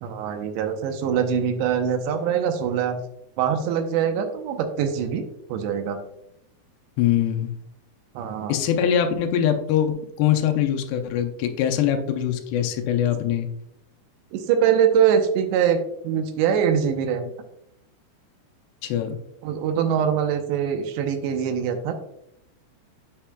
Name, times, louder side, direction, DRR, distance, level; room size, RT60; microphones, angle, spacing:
voice 1, 0.0-3.0 3.4-6.0 8.2-8.6 14.3-17.3 19.4-21.9, right 8 dB, 85° right, 6 dB, 3.0 m, -23 dB
voice 2, 7.0-7.5 8.5-13.5 18.8-19.2, left 9 dB, 80° left, 6 dB, 2.7 m, -23 dB
8.7 x 5.8 x 2.2 m, 0.76 s
omnidirectional pair, 4.9 m